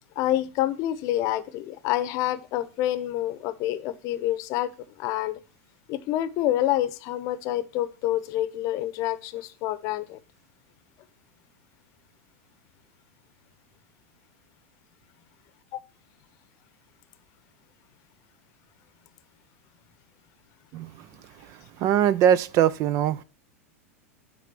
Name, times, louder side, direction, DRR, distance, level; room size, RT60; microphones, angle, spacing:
voice 1, 0.2-4.7 5.0-5.4 5.9-10.2 15.7-15.8, left 13 dB, 45° left, 0.8 m, -27 dB
voice 2, 21.8-23.2, right 10 dB, 45° right, 0.4 m, -21 dB
9.0 x 3.8 x 6.8 m
hypercardioid pair, 90°, 8 cm